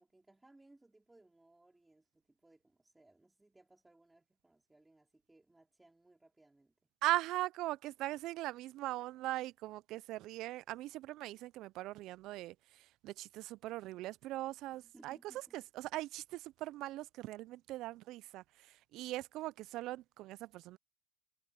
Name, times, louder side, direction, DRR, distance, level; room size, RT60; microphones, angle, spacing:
voice 1, 0.0-6.9 14.7-15.6, right 2 dB, 5° right, 4.0 m, -65 dB
voice 2, 7.0-15.2 15.5-20.8, right 16 dB, 35° right, 0.3 m, -40 dB
supercardioid pair, 160°, 0 cm